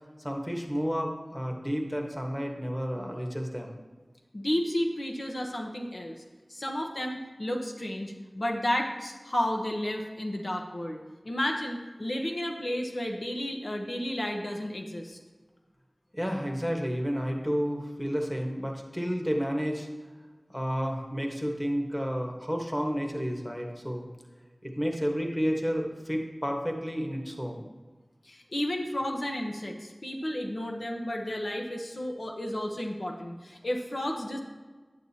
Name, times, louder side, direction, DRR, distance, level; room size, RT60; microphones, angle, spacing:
voice 1, 0.2-3.8 16.1-19.9 20.5-24.1 24.6-27.6, equal, 10° left, 1 dB, 1.3 m, -31 dB
voice 2, 4.3-6.1 6.5-15.2 28.2-34.4, left 1 dB, 70° left, 1 dB, 0.9 m, -32 dB
9.1 x 8.9 x 2.8 m, 1.3 s
wide cardioid pair, 50°, 0 cm